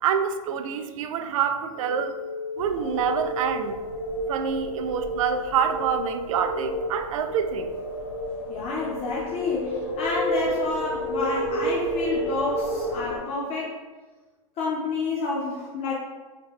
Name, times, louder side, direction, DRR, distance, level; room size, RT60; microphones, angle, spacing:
voice 1, 0.0-2.1 2.6-3.8 4.3-7.7, right 7 dB, 75° right, 8 dB, 0.4 m, -26 dB
sound 1, 1.7-12.9, equal, 75° left, 1.1 m, -33 dB
sound 2, 2.6-13.2, right 1 dB, 50° left, 1.1 m, -34 dB
voice 2, 8.5-13.8 14.6-15.9, left 3 dB, 35° left, -3 dB, 0.6 m, -29 dB
3.1 x 2.9 x 3.5 m, 1.3 s
hypercardioid pair, 125°, 17 cm